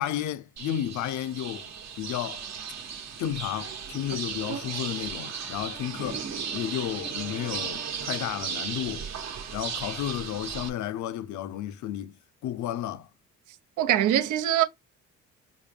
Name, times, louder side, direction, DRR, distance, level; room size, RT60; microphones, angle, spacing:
voice 1, 0.0-1.7 2.0-2.4 3.2-6.3 6.5-9.1 9.5-12.1 12.4-13.1, left 11 dB, 70° left, 0.6 m, -32 dB
sound 1, 0.6-10.7, right 6 dB, 60° right, 1.1 m, -36 dB
voice 2, 13.8-14.6, right 12 dB, 80° right, 0.7 m, -23 dB
5.1 x 2.1 x 3.4 m
cardioid pair, 90°, 30 cm